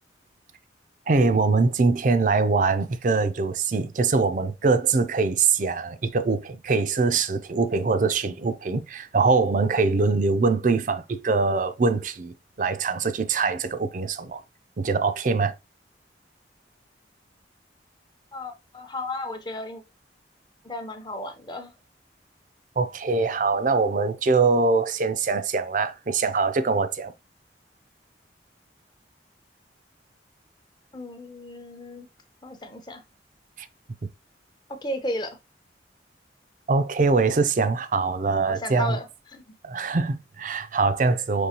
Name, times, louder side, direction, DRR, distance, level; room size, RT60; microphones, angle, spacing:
voice 1, 1.1-14.4 14.8-15.5 22.8-27.1 33.6-33.7 36.7-39.0 39.6-41.5, right 4 dB, 45° right, 0.4 m, -23 dB
voice 2, 18.3-19.8 20.6-21.7 30.9-32.1 32.4-33.0 34.8-35.4 38.5-39.1 39.3-39.4, left 1 dB, 25° left, 0.7 m, -34 dB
5.3 x 3.2 x 2.9 m
head